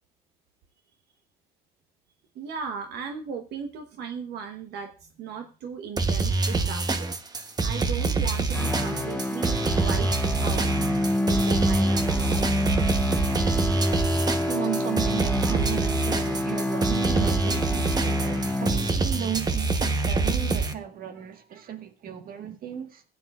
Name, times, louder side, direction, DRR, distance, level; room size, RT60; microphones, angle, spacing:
voice 1, 2.3-7.1 7.6-10.1 10.4-10.7 11.2-12.4, right 6 dB, 80° right, 1.2 m, -37 dB
sound 1, 6.0-20.7, right 3 dB, 25° right, 1.0 m, -26 dB
sound 2, 8.5-19.3, left 1 dB, 10° left, 0.8 m, -28 dB
voice 2, 14.5-23.0, right 10 dB, 60° right, 1.6 m, -35 dB
16.0 x 9.4 x 2.4 m
cardioid pair, 110°, 17 cm